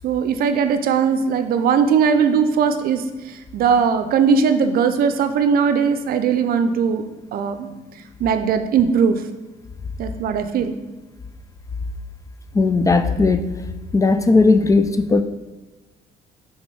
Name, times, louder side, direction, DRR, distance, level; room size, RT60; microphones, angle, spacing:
voice 1, 0.0-3.0 3.5-7.0 7.3-7.7 8.2-9.2 10.0-10.7, right 6 dB, 60° right, 9 dB, 0.5 m, -19 dB
voice 2, 12.5-13.6 13.9-15.2, left 3 dB, 20° left, 9 dB, 0.4 m, -16 dB
5.1 x 3.5 x 5.4 m, 1.2 s
cardioid pair, 110°, 17 cm